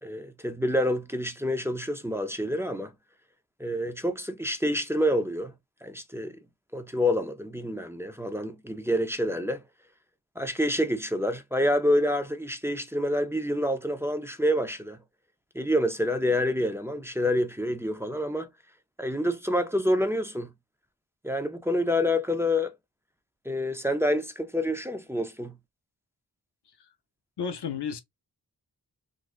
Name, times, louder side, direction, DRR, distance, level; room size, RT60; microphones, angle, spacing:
voice 1, 0.0-2.9 3.6-5.5 5.8-6.4 6.7-9.6 10.4-15.0 15.5-18.5 19.0-20.5 21.2-22.7 23.5-25.5, left 1 dB, 5° right, 0.5 m, -27 dB
voice 2, 27.4-28.0, left 7 dB, 80° left, 0.7 m, -33 dB
3.8 x 2.3 x 2.4 m
wide cardioid pair, 85°, 40 cm